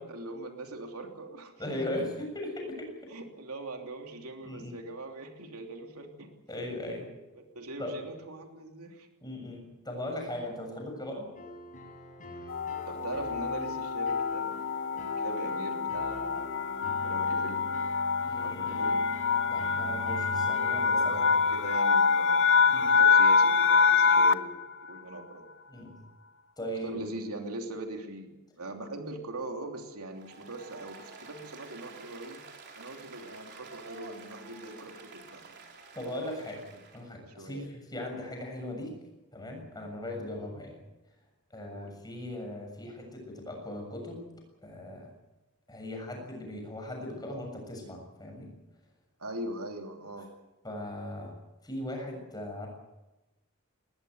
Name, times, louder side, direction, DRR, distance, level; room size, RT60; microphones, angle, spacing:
voice 1, 0.0-1.5 3.1-6.3 6.6-6.7 7.3-9.1 12.9-17.7 18.4-19.1 20.8-25.5 26.8-32.4 32.7-35.7 37.4-37.7 41.7-42.0 49.2-50.3, right 2 dB, 80° right, 3 dB, 3.1 m, -41 dB
voice 2, 1.6-3.1 4.4-4.8 6.5-7.1 7.8-8.0 9.2-11.3 18.3-18.8 19.5-21.2 22.7-23.0 25.7-25.9 26.6-27.0 35.9-36.7 36.9-38.9 39.3-40.8 41.5-44.2 44.6-45.1 45.7-48.5 50.6-51.3 51.6-52.7, left 1 dB, 20° left, 2 dB, 7.0 m, -38 dB
sound 1, 11.4-21.8, left 1 dB, 35° left, 5.3 m, -43 dB
sound 2, 12.5-24.6, left 5 dB, 55° left, 0.8 m, -25 dB
Applause, 30.1-37.1, right 4 dB, 50° right, 4.1 m, -50 dB
20.5 x 20.0 x 8.0 m, 1.0 s
head